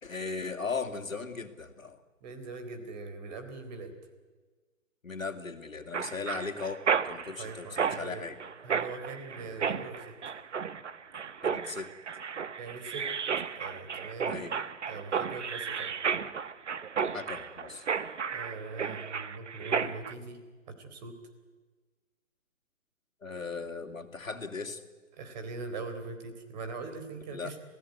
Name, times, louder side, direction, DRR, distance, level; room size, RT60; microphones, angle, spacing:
voice 1, 0.0-2.0 5.0-6.8 7.1-8.4 9.4-9.5 11.4-11.9 14.3-14.6 17.1-17.9 23.2-24.8 27.3-27.5, left 4 dB, 80° left, 6 dB, 2.8 m, -37 dB
voice 2, 2.2-3.9 7.4-8.2 8.6-10.1 12.6-13.1 13.6-14.4 14.9-15.9 18.3-20.4 20.7-21.2 25.1-27.6, right 3 dB, 35° right, 7 dB, 4.0 m, -41 dB
Mechanisms, 5.9-20.1, right 6 dB, 60° right, 1.3 m, -33 dB
27.5 x 16.5 x 9.6 m, 1.4 s
figure-of-eight pair, 145°, 40 cm